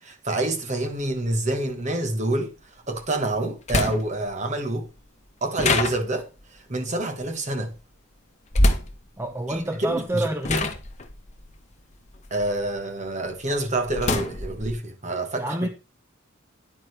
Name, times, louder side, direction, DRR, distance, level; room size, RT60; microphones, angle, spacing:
voice 1, 0.0-2.5 2.9-4.9 5.4-7.7 9.5-10.3 12.3-15.6, right 2 dB, 35° right, 1.4 m, -27 dB
sound 1, 0.8-0.9 2.9-3.0 3.7-4.3 5.6-6.4 8.5-9.0 9.9-10.1 10.4-12.8 13.2-14.8, left 2 dB, 35° left, 1.1 m, -25 dB
voice 2, 9.2-10.8 15.4-15.7, right 1 dB, 10° right, 0.8 m, -28 dB
9.9 x 8.8 x 3.3 m
head